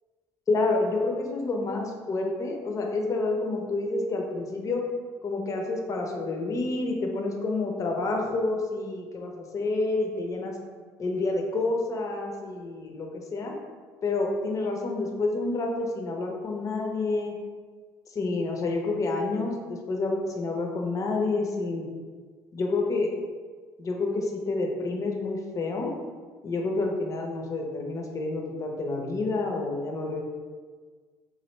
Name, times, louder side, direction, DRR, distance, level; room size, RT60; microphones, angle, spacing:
voice 1, 0.5-4.8 5.2-10.5 11.0-13.5 14.0-17.4 18.1-21.9 22.5-23.1 23.8-25.9 26.4-30.2, left 3 dB, 40° left, 1 dB, 0.6 m, -29 dB
2.9 x 2.4 x 3.1 m, 1.5 s
supercardioid pair, 70°, 9 cm